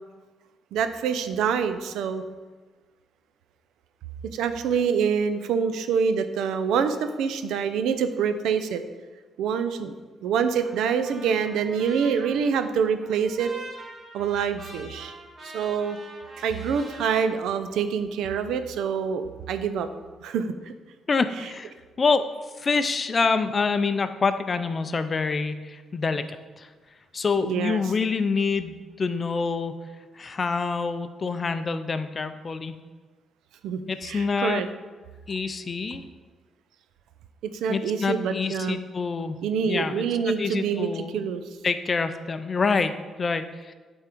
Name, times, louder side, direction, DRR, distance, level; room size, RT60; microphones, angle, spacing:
voice 1, 0.7-2.2 4.3-8.8 9.4-10.0 10.2-13.5 14.1-15.1 15.4-16.0 16.4-19.9 20.2-20.5 27.4-27.8 33.6-34.7 37.4-38.8 39.4-41.4, right 6 dB, 80° right, 10 dB, 0.4 m, -26 dB
Trumpet, 10.5-17.3, right 2 dB, 40° right, 1.3 m, -44 dB
voice 2, 21.1-21.7 22.0-22.3 22.6-26.7 27.1-29.7 30.2-32.7 33.9-34.6 35.3-36.1 37.7-39.4 39.7-41.2 41.6-43.7, left 4 dB, 35° left, 10 dB, 0.4 m, -26 dB
8.5 x 3.6 x 4.5 m, 1.4 s
cardioid pair, 90°, 0 cm